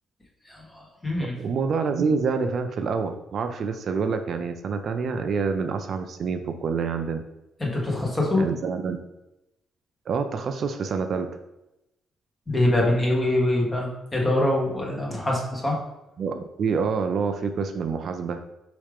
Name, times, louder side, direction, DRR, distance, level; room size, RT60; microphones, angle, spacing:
voice 1, 0.4-1.3 7.6-8.4 12.5-15.8, left 1 dB, 20° left, -2 dB, 1.4 m, -24 dB
voice 2, 1.2-7.2 8.3-9.0 10.1-11.4 16.2-18.4, right 5 dB, 55° right, 7 dB, 0.4 m, -27 dB
4.9 x 3.2 x 3.4 m, 0.92 s
cardioid pair, 90°, 0 cm